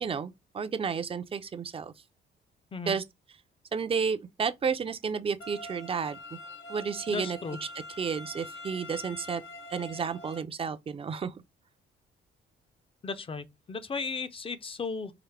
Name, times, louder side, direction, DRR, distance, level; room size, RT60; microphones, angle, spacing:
voice 1, 0.0-1.9 2.9-3.0 3.7-6.4 6.7-7.4 8.0-9.4 9.7-11.3, right 6 dB, 30° right, 0.5 m, -31 dB
sound 1, 5.4-10.4, left 1 dB, 75° left, 0.7 m, -45 dB
voice 2, 7.1-7.6 13.0-15.1, left 4 dB, 30° left, 0.5 m, -35 dB
4.8 x 2.0 x 3.2 m
cardioid pair, 90°, 20 cm